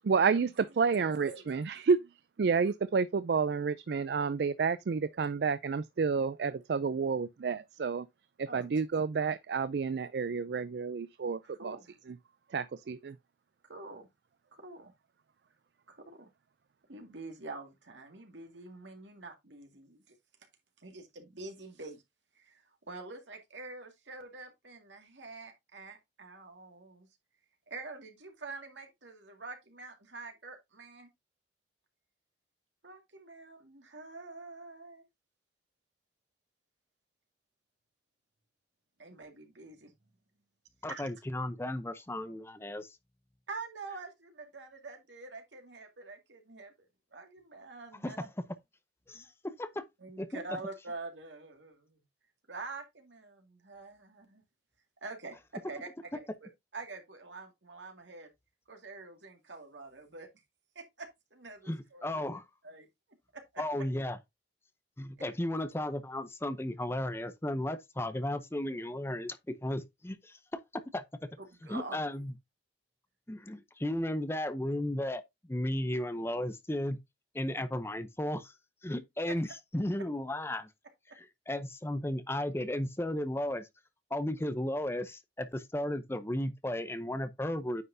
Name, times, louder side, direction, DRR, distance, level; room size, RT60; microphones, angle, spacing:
voice 1, 0.0-2.0 2.4-8.1 8.4-11.8 12.1-12.2 12.5-13.2, right 5 dB, 65° right, 0.4 m, -30 dB
voice 2, 0.8-1.5 6.4-6.5 8.5-8.8 11.4-12.0 13.6-14.1 14.5-14.9 15.9-16.3 16.9-20.2 20.8-22.0 22.3-27.1 27.7-31.1 32.8-35.1 39.0-40.1 40.9-41.0 43.5-46.7 47.1-48.2 49.1-49.3 50.0-52.0 52.5-54.4 55.0-55.4 55.7-56.1 56.4-58.3 58.7-60.3 60.8-62.1 62.6-62.9 63.3-63.6 71.4-72.0 79.3-79.4, right 3 dB, 85° right, 2.1 m, -46 dB
voice 3, 40.8-43.0 48.0-48.3 49.1-49.8 50.2-50.4 61.7-62.4 63.6-64.2 65.0-71.3 71.7-72.3 73.3-75.2 75.5-77.0 77.3-78.5 78.8-79.5 79.7-80.7 81.2-83.7 84.1-87.8, left 1 dB, 15° left, 0.6 m, -34 dB
9.4 x 5.7 x 2.6 m
head